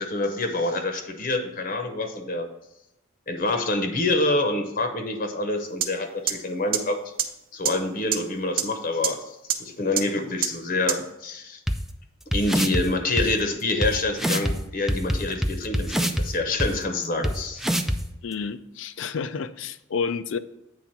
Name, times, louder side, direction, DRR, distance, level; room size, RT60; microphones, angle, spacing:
voice 1, 0.0-2.5 3.3-7.0 7.5-11.6 12.3-17.6, left 2 dB, 45° left, 6 dB, 0.8 m, -27 dB
sound 1, 5.8-5.9 6.3-6.4 6.7-6.8 7.2-7.3 7.6-7.7 8.1-8.2 8.6-8.7 9.0-9.1 9.5-9.6 10.0-10.1 10.4-10.5 10.9-11.0, right 10 dB, 50° right, 0.7 m, -22 dB
sound 2, 11.7-11.8 12.3-12.8 13.2-13.3 13.8-13.9 14.2-14.5 14.9-16.3 16.6-16.7 17.2-17.3 17.6-18.0, equal, ahead, 0.3 m, -23 dB
voice 2, 18.2-20.4, left 5 dB, 75° left, 13 dB, 0.4 m, -30 dB
8.8 x 3.5 x 5.8 m, 0.86 s
head